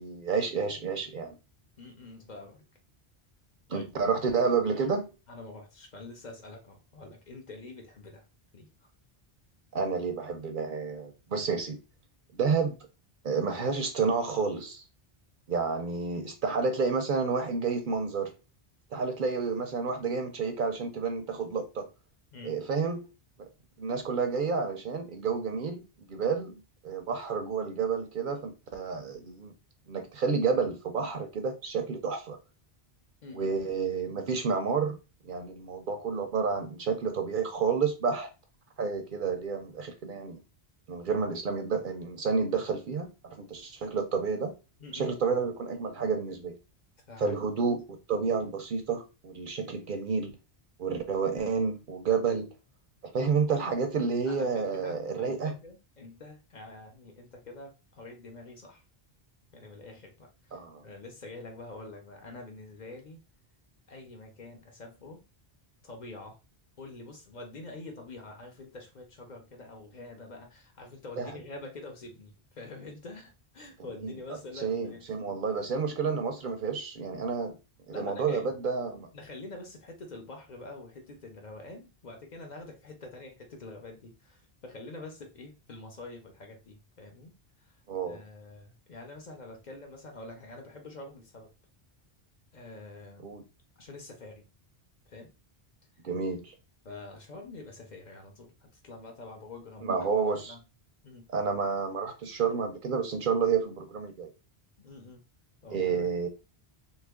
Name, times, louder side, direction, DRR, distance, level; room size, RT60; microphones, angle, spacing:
voice 1, 0.0-1.4 3.7-5.1 9.7-11.8 12.3-12.8 13.2-14.8 15.5-18.3 18.9-21.9 22.4-23.1 23.4-23.5 23.8-26.5 26.8-29.5 29.9-32.4 33.3-35.0 35.2-38.3 38.8-40.4 40.9-44.5 44.9-46.6 47.2-50.4 50.8-52.5 53.0-55.6 60.5-60.8 71.2-71.4 73.8-74.1 74.6-77.6 77.9-79.1 87.9-88.2 93.2-93.4 96.0-96.5 99.8-100.5 101.3-104.3 105.7-106.3, right 5 dB, 60° right, 0.6 m, -30 dB
voice 2, 1.8-2.6 3.7-3.9 5.3-8.2 8.5-8.7 22.3-22.6 33.2-33.5 44.8-45.4 47.1-47.3 54.3-58.8 59.5-63.2 63.9-65.2 65.8-66.4 66.8-75.1 77.9-78.6 79.1-87.3 87.6-87.7 88.1-91.5 92.5-93.3 93.8-94.4 95.1-95.3 96.8-99.9 100.5-100.6 101.0-101.3 104.8-105.2 105.6-106.1, left 2 dB, 50° left, 0.8 m, -46 dB
2.9 x 2.4 x 3.5 m
omnidirectional pair, 1.1 m